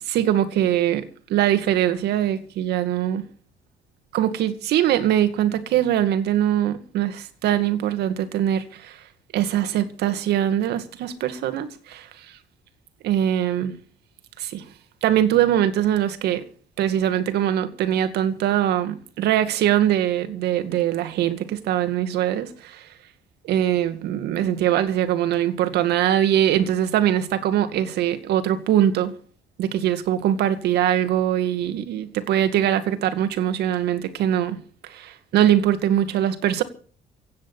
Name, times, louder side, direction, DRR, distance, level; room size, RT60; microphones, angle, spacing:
voice 1, 0.1-3.2 4.1-9.0 9.3-12.1 13.0-13.7 14.4-14.6 15.0-16.5 16.8-22.9 23.4-29.1 29.6-34.6 34.8-36.6, right 11 dB, 75° right, 2.2 m, -22 dB
16.5 x 9.4 x 7.2 m
cardioid pair, 110°, 17 cm